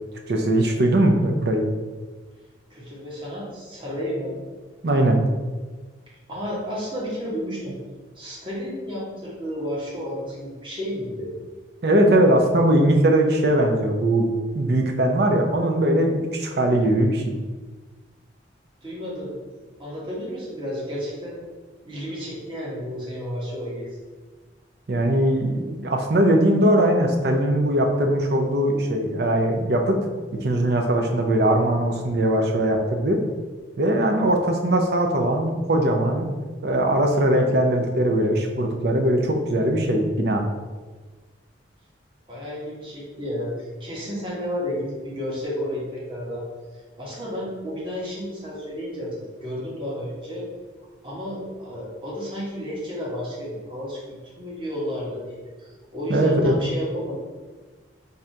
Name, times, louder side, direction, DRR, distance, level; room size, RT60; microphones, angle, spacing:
voice 1, 0.3-1.7 4.8-5.2 11.8-17.3 24.9-30.0 30.4-33.2 33.8-36.3 36.6-40.4 56.1-56.5, right 1 dB, 60° right, 3 dB, 0.6 m, -20 dB
voice 2, 2.7-4.4 6.3-7.7 8.1-11.3 18.8-21.4 21.8-24.0 42.3-46.5 47.0-50.4 51.0-54.0 54.4-57.1, equal, 25° right, -6 dB, 1.2 m, -32 dB
3.7 x 2.8 x 4.4 m, 1.3 s
head